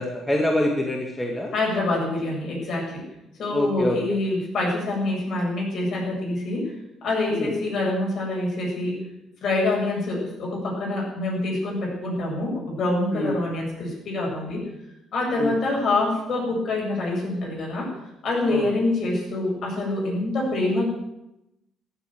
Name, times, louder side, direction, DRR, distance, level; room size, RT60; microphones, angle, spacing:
voice 1, 0.0-1.5 3.5-4.0 7.3-7.5 13.1-13.3 15.4-15.5 18.5-18.7, left 1 dB, 15° left, 1 dB, 2.0 m, -25 dB
voice 2, 1.5-3.0 3.4-6.7 7.0-9.0 9.4-14.6 15.1-17.9 18.2-20.8, left 2 dB, 55° left, -2 dB, 7.9 m, -26 dB
14.5 x 8.2 x 9.2 m, 0.87 s
cardioid pair, 110°, 0 cm